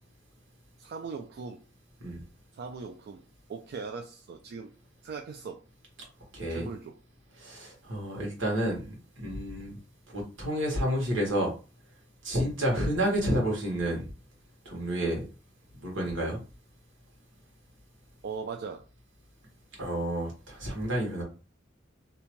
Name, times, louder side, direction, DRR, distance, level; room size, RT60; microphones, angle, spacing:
voice 1, 0.8-1.6 2.5-3.2 3.5-4.7 5.0-5.6 6.5-6.9 18.2-18.9, right 5 dB, 55° right, 4 dB, 0.3 m, -39 dB
voice 2, 6.3-6.7 7.4-9.7 10.1-11.5 12.2-14.1 14.6-15.2 15.8-16.4 19.8-21.2, equal, 80° right, -1 dB, 1.3 m, -30 dB
2.7 x 2.1 x 2.9 m, 0.34 s
head